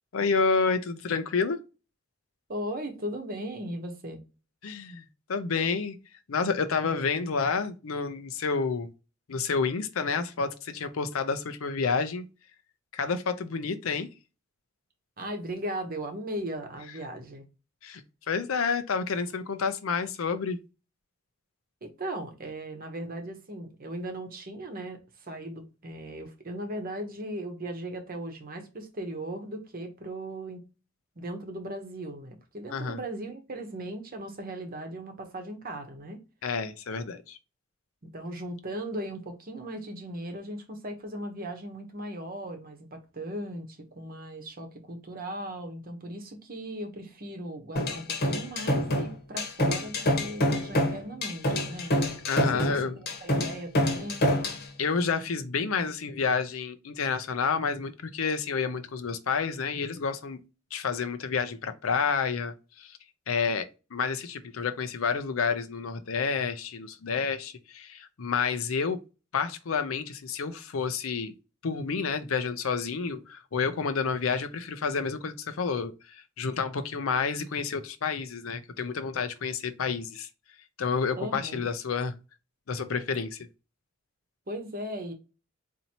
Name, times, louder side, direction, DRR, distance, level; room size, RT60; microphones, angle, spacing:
voice 1, 0.1-1.6 4.6-5.9 6.3-8.9 9.3-12.3 12.9-14.1 17.8-20.6 32.7-33.0 36.4-37.4 52.3-52.9 54.8-60.4 60.7-63.0 63.3-69.0 69.3-71.3 71.6-80.3 80.8-82.1 82.7-83.5, left 5 dB, 90° left, 0.5 m, -29 dB
voice 2, 2.5-4.2 15.2-17.4 21.8-30.6 31.2-36.2 38.1-51.9 52.4-54.3 81.2-81.7 84.5-85.1, right 1 dB, 45° right, 0.9 m, -38 dB
sound 1, 47.8-54.6, left 1 dB, 50° left, 1.1 m, -26 dB
4.2 x 2.7 x 2.8 m
head